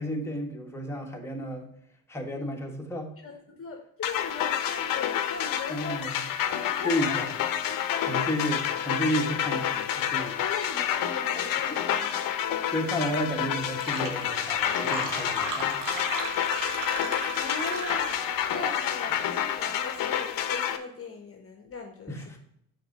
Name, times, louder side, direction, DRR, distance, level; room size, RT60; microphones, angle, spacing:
voice 1, 0.0-1.7 2.1-3.1 5.7-6.2 6.8-7.3 8.1-10.4 11.7-11.8 12.7-15.8 22.1-22.4, equal, 5° left, 0 dB, 1.4 m, -32 dB
voice 2, 3.2-6.1 6.8-7.3 7.6-8.3 10.4-12.1 17.3-18.2 18.5-22.4, left 4 dB, 35° left, 3 dB, 1.1 m, -38 dB
sound 1, 4.0-20.8, left 10 dB, 55° left, 0.8 m, -29 dB
Fill (with liquid), 13.3-13.4 13.6-18.4, right 4 dB, 50° right, 1.7 m, -36 dB
5.8 x 4.5 x 5.2 m, 0.73 s
supercardioid pair, 65°, 39 cm